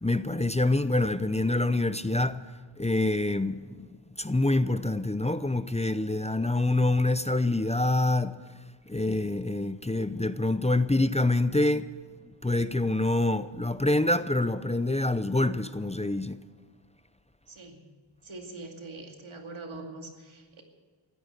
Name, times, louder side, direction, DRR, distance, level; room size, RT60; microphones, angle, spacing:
voice 1, 0.0-2.4 2.8-3.9 4.2-8.4 8.9-11.9 12.4-16.4, left 2 dB, 15° left, 0.7 m, -26 dB
voice 2, 17.5-17.8 18.2-20.6, right 2 dB, 90° right, 2.5 m, -43 dB
15.5 x 13.0 x 6.7 m
wide cardioid pair, 60°, 47 cm